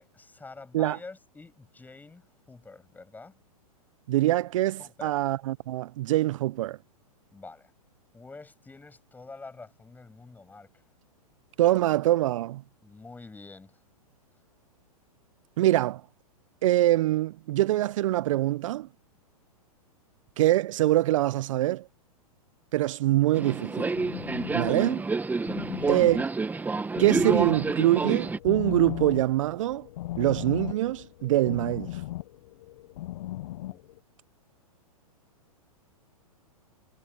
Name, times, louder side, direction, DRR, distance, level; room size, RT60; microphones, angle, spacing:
voice 1, 0.0-3.4 4.8-5.1 7.3-7.7 8.1-10.7 12.8-13.8 25.6-25.9 33.7-33.8, left 3 dB, 10° left, 7.7 m, -47 dB
voice 2, 4.1-6.8 11.6-12.6 15.6-16.0 16.6-18.9 20.4-21.9 22.7-23.9 24.5-25.1 25.9-26.2 27.0-29.9 30.2-32.0, right 15 dB, 60° right, 0.7 m, -24 dB
sound 1, 23.2-34.0, left 15 dB, 60° left, 1.1 m, -37 dB
Subway metro underground, 23.3-28.4, right 3 dB, 10° right, 1.4 m, -29 dB
hypercardioid pair, 115°, 19 cm